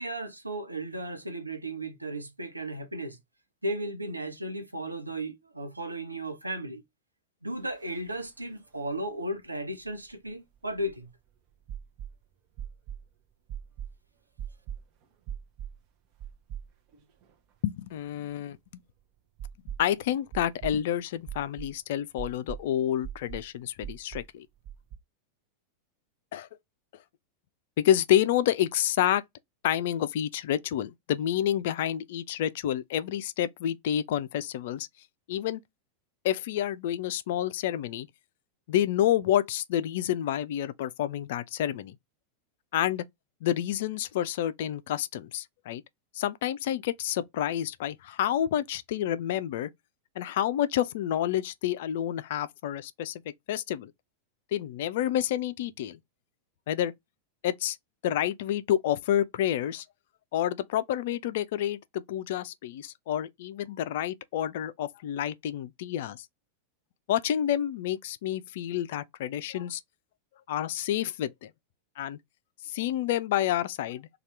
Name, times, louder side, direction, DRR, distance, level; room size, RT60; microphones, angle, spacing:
voice 1, 0.0-3.2 3.6-6.8 7.4-11.1, right 1 dB, 85° right, 0.7 m, -35 dB
sound 1, 7.9-8.0 8.2-8.3 9.9-11.1 11.7-12.2 12.6-13.1 13.5-14.0 14.4-14.8 15.3-15.8 16.2-17.0 17.3-17.4 19.4-20.0 20.3-20.8 21.3-21.7 22.2-22.6 23.0-23.5 23.8-24.3 24.6-25.0, right 9 dB, 40° right, 0.7 m, -40 dB
voice 2, 17.6-18.6 19.8-24.5 26.3-26.5 27.8-29.2 29.6-34.9 35.3-35.6 36.2-38.1 38.7-42.0 42.7-43.0 43.4-45.8 46.1-49.7 50.2-53.2 53.5-53.9 54.5-56.0 56.7-56.9 57.4-57.8 58.0-59.8 60.3-66.3 67.1-69.8 70.5-71.5 72.0-72.2 72.6-74.1, left 11 dB, 55° left, 0.3 m, -29 dB
2.7 x 2.3 x 3.2 m
figure-of-eight pair, 90°, 0 cm